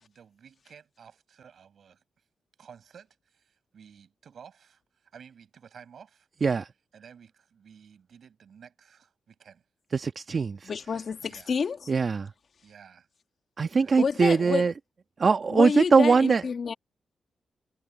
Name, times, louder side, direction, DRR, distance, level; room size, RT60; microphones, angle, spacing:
voice 1, 0.0-2.0 2.6-6.3 6.9-9.6 11.2-11.5 12.6-13.1 13.8-14.7, right 7 dB, 70° right, 7.6 m, -53 dB
voice 2, 9.9-10.7 11.9-12.3 13.6-14.7 15.2-16.4, right 4 dB, 50° right, 1.3 m, -22 dB
voice 3, 10.7-11.9 14.0-14.7 15.5-16.7, left 5 dB, 60° left, 2.0 m, -29 dB
supercardioid pair, 45°, 0 cm